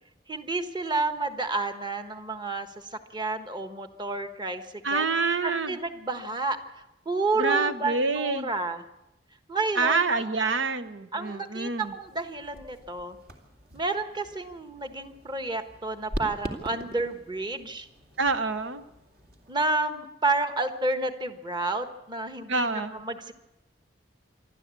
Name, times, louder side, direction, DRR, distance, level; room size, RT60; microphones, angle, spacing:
voice 1, 0.3-5.1 5.4-6.6 7.0-8.8 9.5-10.3 11.1-13.2 13.7-17.9 19.5-23.3, right 3 dB, 25° right, 8 dB, 1.3 m, -30 dB
voice 2, 4.8-5.8 7.4-8.5 9.8-11.9 18.2-18.8 22.5-23.0, right 3 dB, 90° right, 11 dB, 1.0 m, -27 dB
sound 1, 11.8-19.5, equal, 55° right, 2.5 m, -42 dB
27.0 x 12.5 x 8.3 m, 0.90 s
head